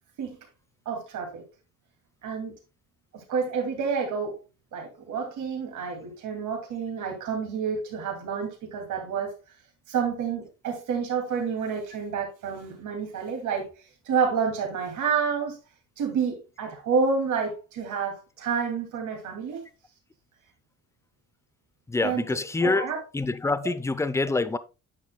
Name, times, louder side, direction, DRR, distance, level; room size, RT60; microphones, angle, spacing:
voice 1, 0.9-1.4 2.2-2.5 3.1-4.3 4.7-9.3 9.9-13.7 14.1-15.6 16.0-19.6 22.0-23.0, right 6 dB, 80° right, 2.5 m, -29 dB
voice 2, 21.9-22.9 23.1-24.6, left 3 dB, 10° left, 0.6 m, -26 dB
9.5 x 6.4 x 2.2 m
cardioid pair, 90°, 30 cm